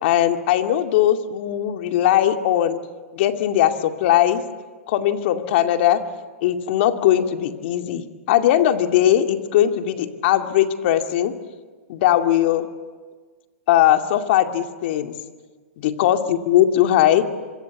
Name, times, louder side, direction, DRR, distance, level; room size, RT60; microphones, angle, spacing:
voice 1, 0.0-2.8 3.1-4.4 4.9-6.0 6.4-11.3 11.9-12.7 13.7-15.1 15.8-17.2, left 12 dB, 55° left, 6 dB, 2.3 m, -19 dB
26.5 x 25.5 x 8.3 m, 1.4 s
hypercardioid pair, 125°, 7 cm